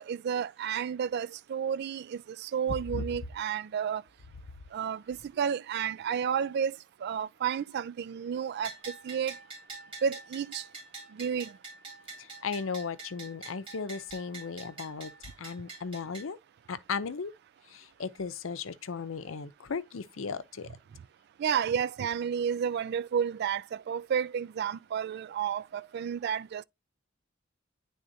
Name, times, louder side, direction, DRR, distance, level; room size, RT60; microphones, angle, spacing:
voice 1, 0.0-4.0 4.7-8.7 9.0-9.4 10.0-10.6 11.1-11.5 21.4-26.6, right 7 dB, 55° right, 0.3 m, -31 dB
Bell, 8.6-16.3, right 3 dB, 25° right, 4.0 m, -46 dB
voice 2, 12.2-16.4 16.7-17.3 17.7-20.7, left 5 dB, 85° left, 0.6 m, -36 dB
9.9 x 3.5 x 2.7 m
head